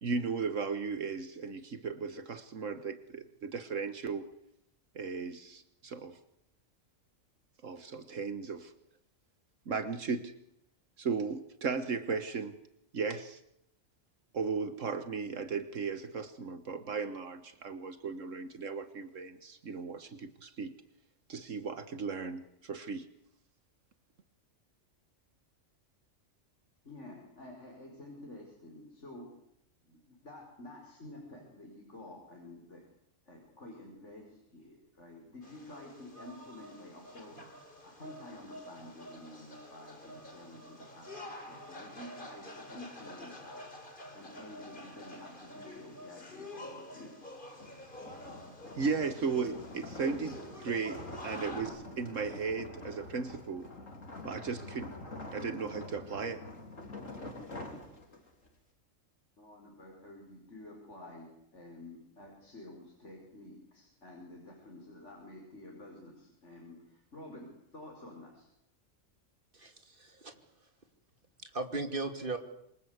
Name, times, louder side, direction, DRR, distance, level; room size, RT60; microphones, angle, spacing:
voice 1, 0.0-4.2 5.0-6.2 7.6-8.7 9.7-10.3 11.0-12.5 12.9-13.4 14.3-20.7 21.3-23.1 48.8-53.7 54.2-55.0 55.3-56.4, right 5 dB, 75° right, 11 dB, 1.7 m, -36 dB
voice 2, 26.8-29.3 29.8-32.8 33.3-43.7 44.1-47.1 59.4-68.5, left 1 dB, 65° left, 0 dB, 5.6 m, -50 dB
sound 1, 35.4-51.6, left 1 dB, 40° left, 3.7 m, -48 dB
sound 2, 47.5-58.5, left 2 dB, 80° left, 4.2 m, -46 dB
voice 3, 69.5-70.3 71.4-72.4, right 3 dB, 40° right, 7 dB, 2.8 m, -37 dB
27.0 x 24.0 x 8.2 m, 0.78 s
omnidirectional pair, 1.3 m